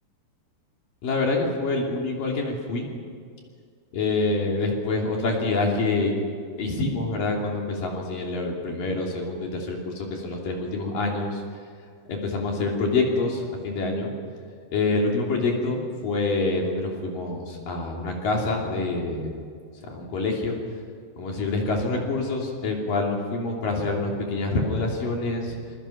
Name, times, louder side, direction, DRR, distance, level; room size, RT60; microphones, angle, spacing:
voice 1, 1.0-2.9 3.9-6.1 6.6-11.4 12.1-14.1 14.7-19.4 19.9-20.6 21.2-25.6, left 3 dB, 50° left, -1 dB, 4.4 m, -26 dB
26.5 x 22.0 x 5.9 m, 2.2 s
omnidirectional pair, 5.3 m